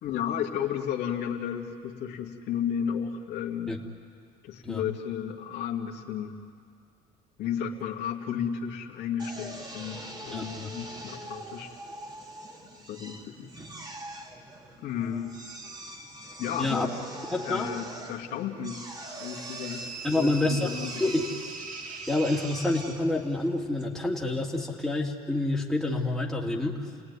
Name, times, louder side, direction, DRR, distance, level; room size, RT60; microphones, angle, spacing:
voice 1, 0.0-3.8 4.4-6.3 7.4-11.7 12.9-13.5 14.8-15.4 16.4-17.0 17.4-18.8 19.2-19.8 20.1-21.0, left 8 dB, 65° left, 1 dB, 2.3 m, -33 dB
Drill, 9.2-24.5, right 1 dB, 20° right, 2.6 m, -44 dB
voice 2, 10.3-10.7 16.6-16.9 17.3-17.7 20.0-20.7 21.0-21.2 22.1-26.8, left 2 dB, ahead, -2 dB, 2.7 m, -28 dB
sound 1, 19.0-23.2, right 4 dB, 45° right, 2.2 m, -41 dB
30.0 x 18.5 x 9.8 m, 2.3 s
cardioid pair, 110°, 18 cm